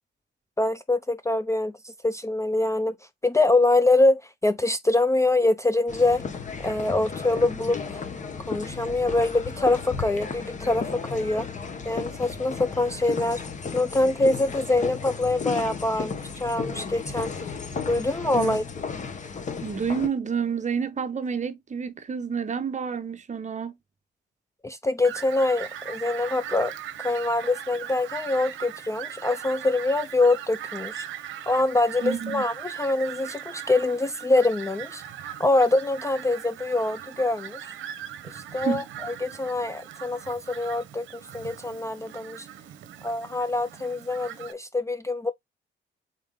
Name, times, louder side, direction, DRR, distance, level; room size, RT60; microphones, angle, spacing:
voice 1, 0.6-2.9 3.2-6.2 6.6-8.0 8.5-11.5 11.8-13.4 13.7-17.3 17.9-18.6 24.6-26.7 27.0-31.0 31.5-35.0 35.4-37.6 38.3-42.5 43.0-45.3, left 2 dB, 15° left, 0.4 m, -24 dB
sound 1, 5.9-20.1, left 5 dB, 40° left, 1.0 m, -34 dB
voice 2, 19.6-23.8 32.0-32.4 38.6-38.9, right 6 dB, 35° right, 0.8 m, -29 dB
Fowl, 25.0-44.5, right 10 dB, 75° right, 0.8 m, -40 dB
4.0 x 3.5 x 3.7 m
cardioid pair, 90°, 20 cm